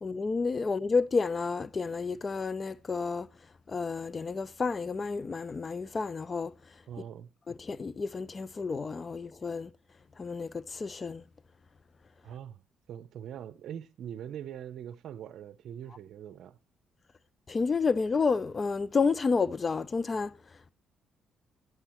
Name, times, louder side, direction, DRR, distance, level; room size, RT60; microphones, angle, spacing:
voice 1, 0.0-3.3 3.7-6.5 7.5-9.7 10.2-11.2 17.5-20.3, left 4 dB, 35° left, 0.5 m, -30 dB
voice 2, 6.9-7.3 12.2-12.6 12.9-16.6, right 9 dB, 70° right, 0.6 m, -42 dB
11.0 x 8.1 x 4.3 m
cardioid pair, 90°, 0 cm